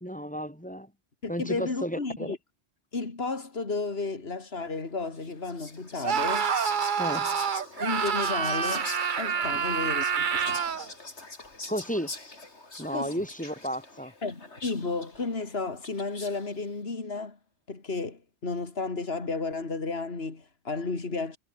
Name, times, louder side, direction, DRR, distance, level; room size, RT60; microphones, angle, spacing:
voice 1, 0.0-0.9 1.3-2.3 7.0-7.3 9.5-9.6 11.7-12.1 12.8-14.1, equal, 5° left, 3.1 m, -33 dB
voice 2, 1.2-2.4 2.9-6.5 7.8-8.9 9.2-10.6 12.9-13.2 14.2-17.4 17.7-21.4, left 3 dB, 65° left, 3.0 m, -33 dB
Whispering, 5.1-16.6, left 2 dB, 80° left, 4.2 m, -44 dB
Screaming, 6.0-10.9, right 7 dB, 50° right, 1.0 m, -27 dB
omnidirectional pair, 1.1 m